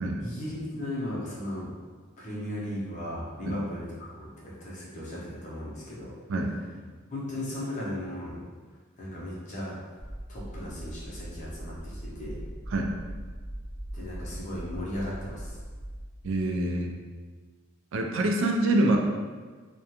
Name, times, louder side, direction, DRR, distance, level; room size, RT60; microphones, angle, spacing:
voice 1, 0.2-1.7 2.2-6.1 7.1-8.4 9.0-9.7 10.3-12.4 13.9-15.5, left 1 dB, 35° left, -6 dB, 0.6 m, -36 dB
sound 1, 10.0-16.0, right 1 dB, 5° right, 0.6 m, -40 dB
voice 2, 16.2-17.0 17.9-19.0, right 1 dB, 65° right, 2 dB, 0.3 m, -26 dB
2.4 x 2.1 x 2.8 m, 1.5 s
head